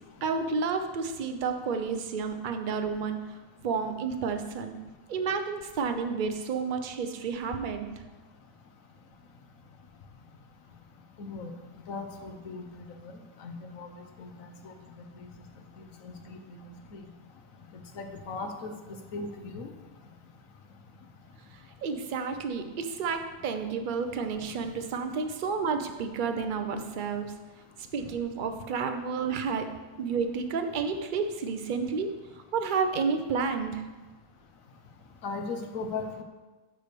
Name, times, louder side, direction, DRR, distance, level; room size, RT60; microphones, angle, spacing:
voice 1, 0.2-3.4 3.6-4.8 5.1-7.9 21.8-27.3 27.8-29.7 30.0-33.8, right 5 dB, 50° right, 7 dB, 0.6 m, -31 dB
voice 2, 11.2-11.5 11.9-12.7 13.4-13.9 14.2-14.7 16.0-16.4 16.9-17.0 18.0-18.7 19.1-19.7 35.2-36.2, left 4 dB, 70° left, 5 dB, 1.2 m, -37 dB
9.5 x 3.4 x 6.6 m, 1.2 s
omnidirectional pair, 1.5 m